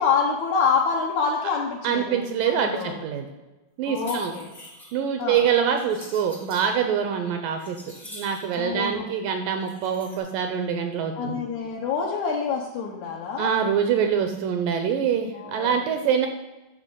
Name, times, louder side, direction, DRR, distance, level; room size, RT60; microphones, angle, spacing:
voice 1, 0.0-3.0 3.9-4.5 5.2-5.5 8.6-9.1 11.2-13.5 15.3-15.8, left 5 dB, 80° left, -2 dB, 1.7 m, -26 dB
voice 2, 1.8-3.3 3.8-4.3 4.9-7.8 8.0-11.4 13.4-16.3, right 7 dB, 80° right, 5 dB, 2.0 m, -25 dB
sound 1, 3.9-5.0 5.8-6.7 7.2-8.6 9.6-10.2, left 1 dB, 40° left, 0.5 m, -44 dB
9.8 x 6.7 x 3.8 m, 1.1 s
omnidirectional pair, 4.5 m